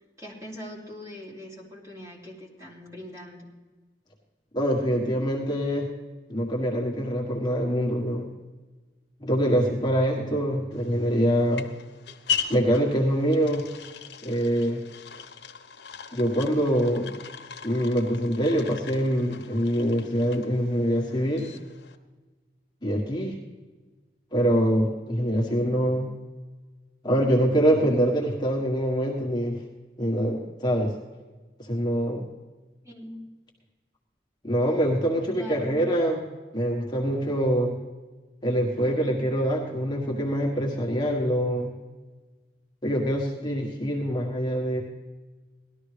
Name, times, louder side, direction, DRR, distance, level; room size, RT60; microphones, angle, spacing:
voice 1, 0.2-3.5 32.8-33.3 35.3-35.9, left 1 dB, 20° right, -3 dB, 2.9 m, -41 dB
voice 2, 4.5-5.9 6.3-8.3 9.2-11.7 12.5-13.6 14.2-14.8 16.1-17.1 17.6-21.5 22.8-23.4 24.3-26.1 27.0-29.6 30.0-30.9 31.6-32.3 34.4-36.2 36.5-37.8 38.4-41.7 42.8-44.8, equal, 25° left, -2 dB, 1.4 m, -24 dB
sound 1, 10.7-22.0, left 7 dB, 80° left, 1.0 m, -38 dB
18.0 x 12.5 x 3.3 m, 1.3 s
head